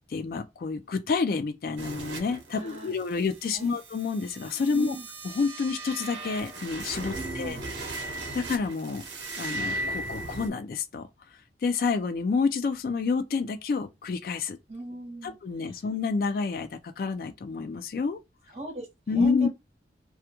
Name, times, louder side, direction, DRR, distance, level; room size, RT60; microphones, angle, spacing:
voice 1, 0.1-5.0 5.2-7.6 8.1-9.0 9.4-11.1 11.6-14.6 15.2-18.2 19.1-19.5, left 4 dB, 55° left, 0.3 m, -29 dB
sound 1, 1.8-10.5, right 2 dB, 85° right, 0.7 m, -37 dB
voice 2, 2.5-2.9 3.4-3.8 4.7-5.1 7.1-7.6 14.7-15.4 15.6-15.8 18.5-19.5, right 2 dB, 35° right, 0.9 m, -39 dB
2.4 x 2.1 x 2.8 m
head